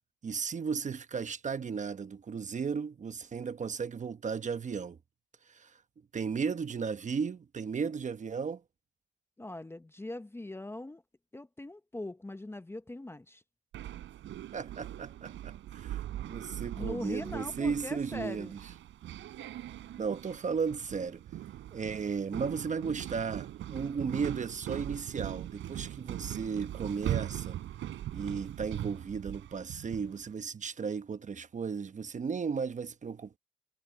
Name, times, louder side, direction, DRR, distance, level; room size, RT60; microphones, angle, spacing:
voice 1, 0.2-5.0 5.5-5.8 6.1-8.6 14.5-18.6 20.0-21.2 21.7-27.6 28.1-33.4, right 5 dB, 40° right, 1.1 m, -35 dB
voice 2, 9.4-11.0 11.3-13.4 16.8-18.5, left 2 dB, 10° left, 0.9 m, -41 dB
sound 1, 13.7-30.2, right 12 dB, 80° right, 3.7 m, -40 dB
cardioid pair, 90°, 20 cm